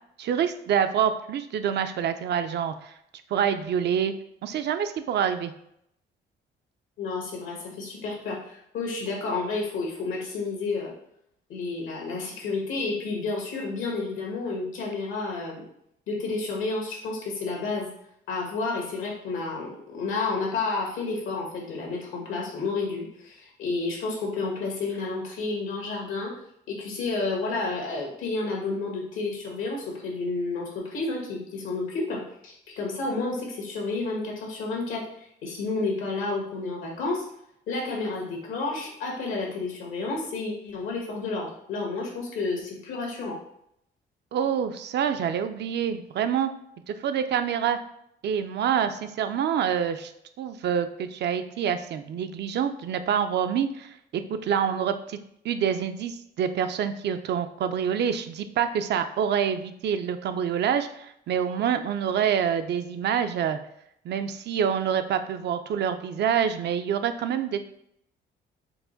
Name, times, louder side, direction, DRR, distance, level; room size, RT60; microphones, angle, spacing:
voice 1, 0.2-2.9 3.3-4.1 4.4-5.5 44.3-46.5 46.9-47.8 48.2-50.1 50.4-55.2 55.4-63.6 64.1-67.6, right 8 dB, 60° right, 9 dB, 0.4 m, -26 dB
voice 2, 7.0-10.9 11.5-15.6 16.1-17.9 18.3-26.3 26.7-37.2 37.7-43.4, left 3 dB, 85° left, -1 dB, 1.4 m, -31 dB
4.6 x 2.1 x 3.9 m, 0.74 s
cardioid pair, 90°, 20 cm